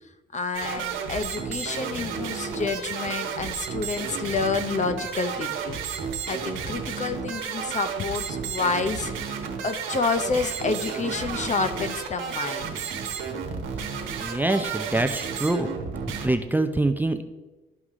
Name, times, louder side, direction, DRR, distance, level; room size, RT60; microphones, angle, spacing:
voice 1, 0.3-5.8 6.3-12.8, left 4 dB, 35° left, 10 dB, 0.6 m, -29 dB
sound 1, 0.5-16.3, right 6 dB, 90° right, 1.1 m, -32 dB
voice 2, 14.2-15.7 16.2-17.2, right 2 dB, 10° right, 7 dB, 0.5 m, -25 dB
12.5 x 4.8 x 3.7 m, 1.2 s
cardioid pair, 90°, 20 cm